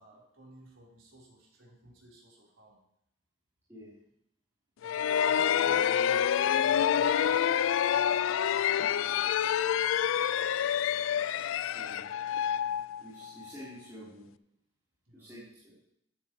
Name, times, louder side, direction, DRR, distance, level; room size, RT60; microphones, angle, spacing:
voice 1, 0.0-2.8 4.8-9.3 15.1-15.4, right 1 dB, 85° right, -4 dB, 4.0 m, -56 dB
sound 1, 4.8-13.5, left 9 dB, 80° left, 0.3 m, -27 dB
voice 2, 11.7-12.1 13.0-14.3 15.1-15.8, equal, 15° right, -12 dB, 3.6 m, -48 dB
14.0 x 11.0 x 3.1 m, 0.74 s
head